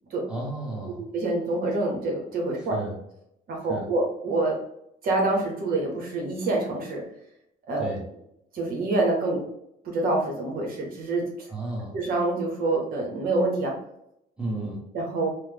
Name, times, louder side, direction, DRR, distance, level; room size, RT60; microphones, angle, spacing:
voice 1, 0.2-1.0 2.7-2.9 3.7-3.9 7.8-8.0 11.5-12.0 14.4-14.8, right 2 dB, 5° right, -4 dB, 1.1 m, -32 dB
voice 2, 1.1-2.8 3.5-4.6 5.0-7.0 7.7-7.9 8.5-9.4 9.8-11.2 11.9-13.7 14.9-15.3, right 2 dB, 60° right, 0 dB, 0.9 m, -26 dB
3.0 x 2.0 x 3.5 m, 0.78 s
cardioid pair, 110°, 17 cm